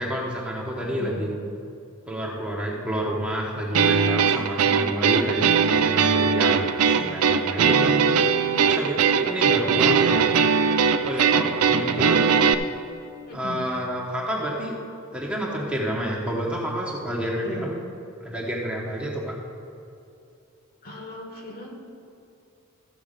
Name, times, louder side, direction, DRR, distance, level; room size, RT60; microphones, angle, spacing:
voice 1, 0.0-1.3 2.1-6.6 7.1-8.0 8.6-10.2 11.0-12.2 13.3-14.7 15.1-17.8 18.2-19.3, equal, 5° right, -3 dB, 1.1 m, -29 dB
voice 2, 0.8-1.2 6.9-7.3 11.5-12.1 13.3-13.6 17.3-17.7 20.8-21.7, right 1 dB, 45° left, 1 dB, 1.5 m, -38 dB
sound 1, 3.7-12.5, right 6 dB, 85° right, 0.5 m, -20 dB
14.0 x 4.8 x 6.6 m, 2.7 s
head